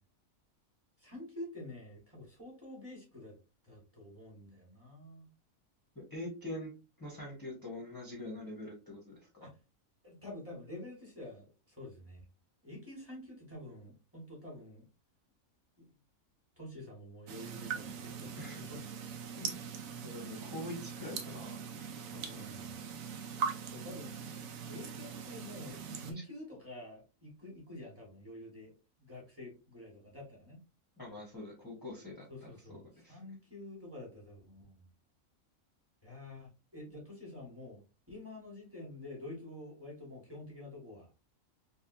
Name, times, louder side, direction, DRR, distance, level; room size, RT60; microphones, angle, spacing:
voice 1, 1.0-3.3 3.6-5.3 9.4-9.5 10.0-12.2 12.6-14.9 15.8-15.9 16.6-18.8 22.1-22.8 23.7-24.1 24.7-28.7 29.0-30.6 32.3-34.9 36.0-37.8 38.1-41.1, left 1 dB, 10° right, -2 dB, 1.4 m, -48 dB
voice 2, 5.9-6.7 7.0-9.2 18.4-18.6 19.4-19.6 20.0-21.5 22.1-22.4 31.0-32.3 32.7-33.2, left 1 dB, 15° left, -4 dB, 0.9 m, -44 dB
sound 1, 17.3-26.1, right 6 dB, 75° right, 1.0 m, -41 dB
3.5 x 2.6 x 2.5 m, 0.30 s
omnidirectional pair, 1.5 m